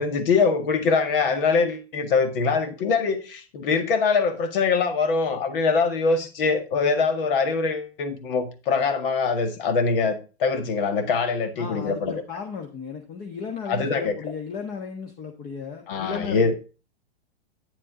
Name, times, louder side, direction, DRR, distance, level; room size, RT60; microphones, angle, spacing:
voice 1, 0.0-12.1 13.7-14.2 15.9-16.6, left 4 dB, 60° left, 9 dB, 2.0 m, -23 dB
voice 2, 11.6-16.5, left 6 dB, 30° left, 4 dB, 1.4 m, -35 dB
9.1 x 7.5 x 3.8 m, 0.33 s
hypercardioid pair, 130°, 31 cm